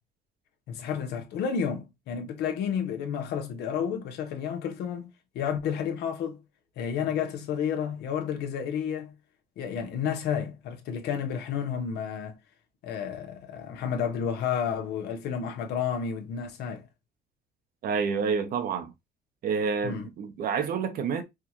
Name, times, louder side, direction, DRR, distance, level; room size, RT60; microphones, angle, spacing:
voice 1, 0.7-6.4 6.8-9.1 9.6-12.4 12.8-16.8 19.8-20.1, left 7 dB, 80° left, 1.0 m, -31 dB
voice 2, 17.8-18.9 19.4-21.2, right 6 dB, 60° right, 0.9 m, -28 dB
4.7 x 2.4 x 3.0 m
cardioid pair, 110°, 17 cm